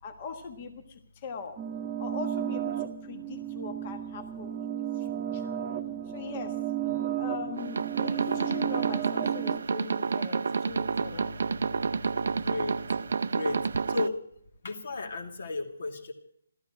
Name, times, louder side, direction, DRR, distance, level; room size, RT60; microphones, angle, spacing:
voice 1, 0.0-1.6 2.0-5.6 6.1-6.6 7.2-11.4, left 5 dB, 25° left, 6 dB, 1.4 m, -41 dB
sound 1, 1.6-9.6, right 11 dB, 15° right, 1.1 m, -33 dB
voice 2, 6.8-7.1 12.3-13.0 13.3-13.6 13.9-14.2 14.6-16.1, left 3 dB, 55° left, 5 dB, 2.5 m, -34 dB
sound 2, 7.6-14.1, right 5 dB, 65° right, 0.6 m, -29 dB
14.5 x 13.5 x 5.9 m, 0.67 s
hypercardioid pair, 170°, 0 cm